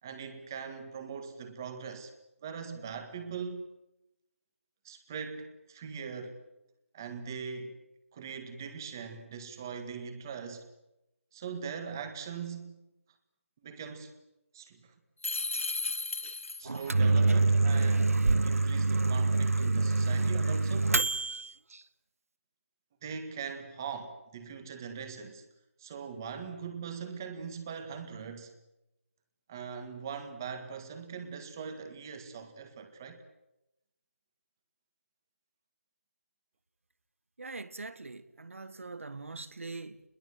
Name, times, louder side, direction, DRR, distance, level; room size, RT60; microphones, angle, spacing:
voice 1, 0.0-2.1 2.4-3.7 4.8-6.4 6.9-7.8 8.1-10.7 11.3-12.9 13.6-14.2 14.5-14.9 15.8-16.0 16.6-21.0 23.0-25.4 25.8-28.5 29.5-33.2, right 6 dB, 15° right, 1.7 m, -41 dB
sound 1, 15.2-16.9, left 3 dB, 65° left, 2.2 m, -34 dB
Microwave oven, 16.7-21.5, right 3 dB, 85° right, 1.0 m, -26 dB
voice 2, 37.4-40.0, right 3 dB, 65° right, 1.9 m, -42 dB
27.5 x 21.5 x 7.7 m
figure-of-eight pair, 180°, 8 cm